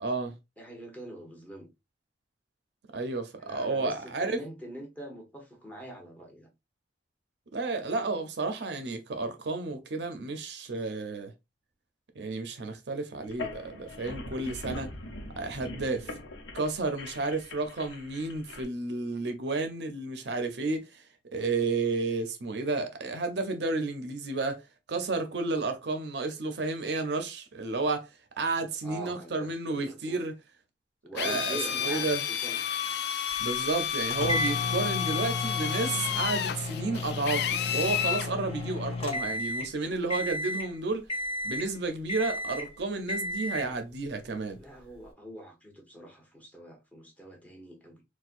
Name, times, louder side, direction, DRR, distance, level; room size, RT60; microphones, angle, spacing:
voice 1, 0.0-0.3 2.9-4.4 7.5-11.3 12.2-14.9 15.4-16.1 16.5-21.0 21.3-24.6 24.9-28.1 28.4-30.3 31.1-32.2 33.4-41.1 41.4-44.6, right 3 dB, 65° right, 0.5 m, -31 dB
voice 2, 0.6-1.7 3.4-6.5 28.8-30.3 31.0-32.6 44.6-48.0, right 1 dB, 10° left, 0.9 m, -44 dB
sound 1, 13.2-18.6, left 2 dB, 85° left, 0.7 m, -42 dB
Drill, 31.2-38.3, left 9 dB, 60° left, 0.4 m, -31 dB
sound 2, 34.1-39.8 40.1-40.7 41.1-41.7 42.1-42.7 43.1-43.7, left 2 dB, 30° left, 0.7 m, -33 dB
4.3 x 2.2 x 2.4 m
head